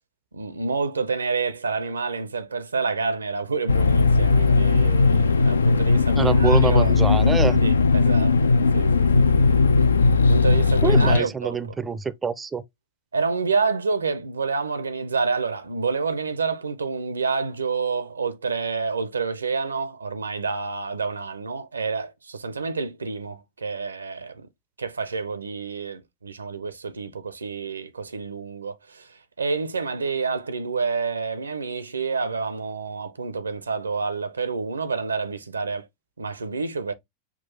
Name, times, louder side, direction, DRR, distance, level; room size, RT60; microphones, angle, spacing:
voice 1, 0.3-6.9 7.6-8.4 8.7-9.6 10.3-11.6 13.1-24.5 24.8-35.9 36.2-36.9, right 4 dB, 75° right, 0.5 m, -28 dB
sound 1, 3.7-11.2, left 4 dB, 70° left, 0.3 m, -18 dB
voice 2, 6.2-7.6 10.8-12.6, right 5 dB, 15° right, 0.4 m, -25 dB
5.9 x 2.3 x 3.0 m
figure-of-eight pair, 90°, 0 cm